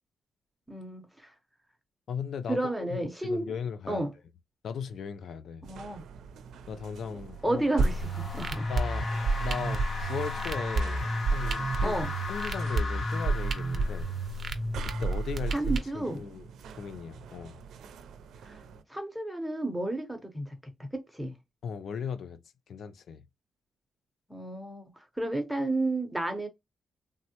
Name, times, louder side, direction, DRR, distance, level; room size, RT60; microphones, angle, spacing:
voice 1, 0.7-1.3 2.5-3.5 3.9-4.1 5.6-6.0 7.4-8.7 11.8-12.1 15.5-16.3 18.4-18.6 18.9-21.3 24.3-26.5, right 2 dB, 5° right, 0.7 m, -32 dB
voice 2, 2.1-4.0 4.6-5.7 6.7-7.6 8.7-9.1 9.4-12.0 12.3-14.1 14.8-15.6 15.9-16.4 16.7-17.6 21.6-22.4 22.7-23.2, left 7 dB, 65° left, 0.3 m, -37 dB
sound 1, 5.6-18.8, right 6 dB, 90° right, 0.4 m, -48 dB
sound 2, 7.4-14.4, left 3 dB, 45° left, 1.0 m, -38 dB
sound 3, 7.8-15.8, right 2 dB, 45° right, 0.6 m, -30 dB
3.5 x 2.0 x 2.8 m
cardioid pair, 120°, 0 cm